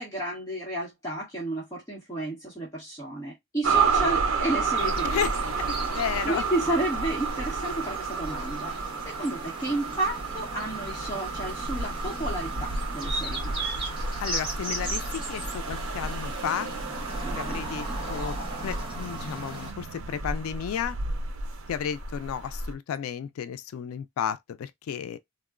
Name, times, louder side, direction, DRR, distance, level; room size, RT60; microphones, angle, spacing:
voice 1, 0.0-5.3 6.2-8.7 9.0-13.5 17.2-17.6, right 2 dB, 15° left, 0.9 m, -32 dB
sound 1, 3.6-22.7, right 4 dB, 65° right, 0.5 m, -31 dB
sound 2, 4.7-19.7, right 2 dB, 25° right, 1.0 m, -38 dB
voice 2, 5.0-6.4 14.2-16.7 17.3-21.0 21.7-25.2, left 8 dB, 80° left, 0.3 m, -33 dB
3.6 x 2.0 x 2.4 m
head